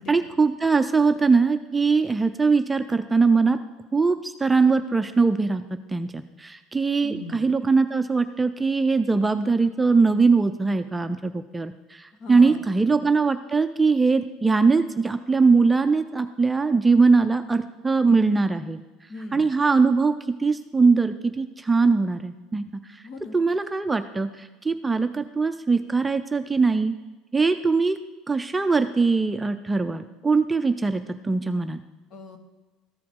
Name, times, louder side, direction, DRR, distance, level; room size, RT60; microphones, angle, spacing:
voice 1, 0.1-3.6 3.9-5.6 5.9-18.8 19.3-22.8 23.3-26.9 27.3-28.0 28.3-31.8, right 4 dB, 10° right, 8 dB, 0.4 m, -21 dB
voice 2, 7.0-7.4 12.2-12.6 19.1-19.4 23.0-23.3 32.1-32.4, left 3 dB, 50° left, 6 dB, 1.2 m, -38 dB
14.0 x 4.8 x 3.7 m, 1.2 s
supercardioid pair, 120°, 0 cm